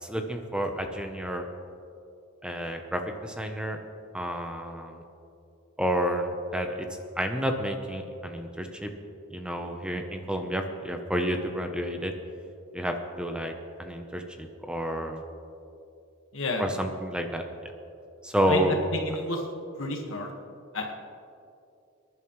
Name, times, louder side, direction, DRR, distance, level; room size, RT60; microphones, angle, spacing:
voice 1, 0.0-1.5 2.4-3.8 4.1-5.0 5.8-6.9 7.2-8.9 9.3-12.1 12.7-13.5 13.8-15.2 16.6-17.7 18.2-18.8, equal, 5° right, 4 dB, 0.8 m, -30 dB
voice 2, 16.3-16.6 18.5-18.6 18.9-19.4 19.8-20.3 20.7-20.9, left 3 dB, 75° left, 2 dB, 1.6 m, -31 dB
25.5 x 11.0 x 3.2 m, 2.7 s
head